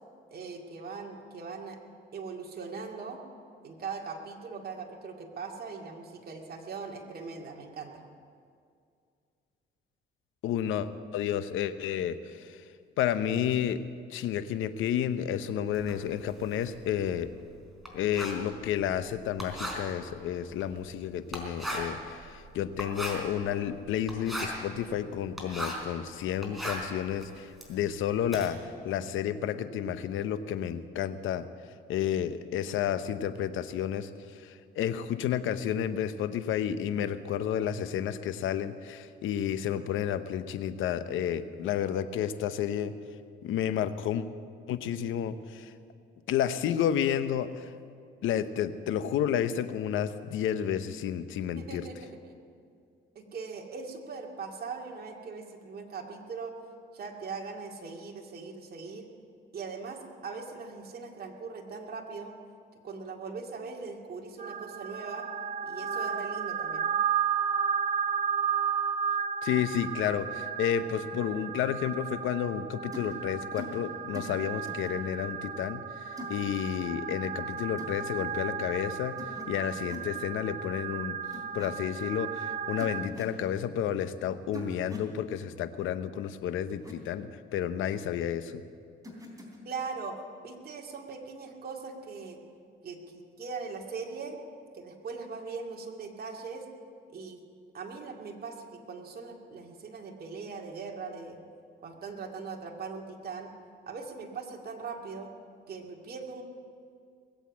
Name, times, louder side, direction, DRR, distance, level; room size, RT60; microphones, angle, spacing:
voice 1, 0.3-1.8 2.1-3.2 3.6-8.0 51.6-52.3 53.2-56.5 56.9-59.1 59.5-62.3 62.8-65.3 65.6-66.8 89.6-92.4 92.8-94.4 94.7-96.6 97.1-97.4 97.7-101.4 101.8-103.5 103.9-105.3 105.7-106.4, right 4 dB, 50° right, 1 dB, 2.2 m, -40 dB
voice 2, 10.4-12.6 13.0-13.8 14.1-17.3 17.9-28.6 28.8-31.5 31.9-42.9 43.4-44.3 44.7-45.7 46.3-47.7 48.2-51.8 69.4-79.2 79.5-81.2 81.5-88.7, left 9 dB, 85° left, 12 dB, 0.8 m, -31 dB
Writing, 15.7-25.9 26.3-28.5, equal, ahead, 4.2 m, -39 dB
sound 1, 64.4-83.1, right 7 dB, 35° right, 0.9 m, -34 dB
sound 2, 72.9-73.1 73.6-73.8 74.1-74.4 74.7-74.9 76.2-76.4 77.8-78.0 79.2-79.5 79.7-80.1 81.3-81.7 82.8-83.4 84.5-85.1 86.7-86.9 89.0-89.6, equal, 15° right, 3.6 m, -42 dB
20.5 x 8.2 x 8.6 m, 2.3 s
cardioid pair, 90°, 20 cm